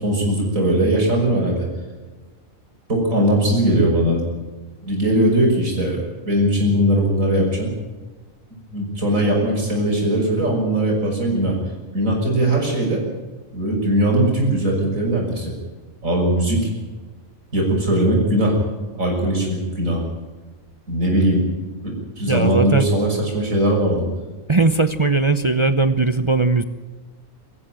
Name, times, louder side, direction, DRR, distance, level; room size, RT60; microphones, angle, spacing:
voice 1, 0.0-1.7 2.9-4.2 4.8-7.7 8.7-11.6 11.9-13.0 13.5-15.5 16.0-16.6 17.5-18.6 18.9-20.0 20.9-21.4 21.8-24.0, right 1 dB, 75° right, -1 dB, 6.6 m, -19 dB
voice 2, 22.3-22.9 24.5-26.6, right 3 dB, 25° right, 10 dB, 0.7 m, -18 dB
24.0 x 14.5 x 9.0 m, 1.3 s
omnidirectional pair, 1.4 m